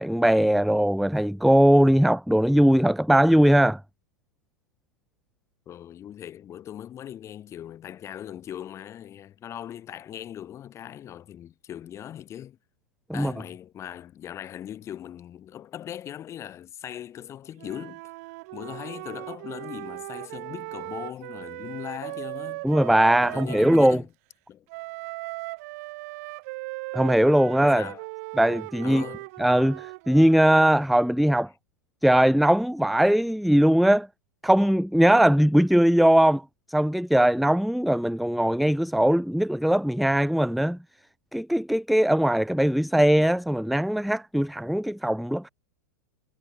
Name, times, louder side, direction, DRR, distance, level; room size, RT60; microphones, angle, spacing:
voice 1, 0.0-3.8 13.1-13.3 22.6-24.0 26.9-27.9 28.4-29.0 29.4-31.5 32.0-34.1 34.4-36.4 36.7-40.8 41.3-45.5, right 1 dB, ahead, 0.3 m, -20 dB
voice 2, 5.7-12.6 13.1-18.0 18.5-22.7 23.2-24.1 24.5-24.6 27.8-28.1 28.8-29.3, left 10 dB, 30° left, 4.0 m, -39 dB
Wind instrument woodwind instrument, 17.6-24.0 24.7-30.7, right 25 dB, 50° right, 3.3 m, -38 dB
figure-of-eight pair, 95°, 10 cm